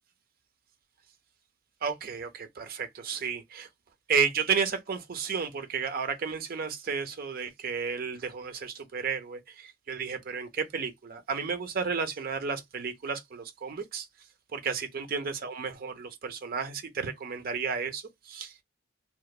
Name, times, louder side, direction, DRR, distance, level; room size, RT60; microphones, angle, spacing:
voice 1, 1.8-3.7 4.1-14.1 14.5-18.5, right 6 dB, 50° right, 0.5 m, -32 dB
2.9 x 2.1 x 2.2 m
head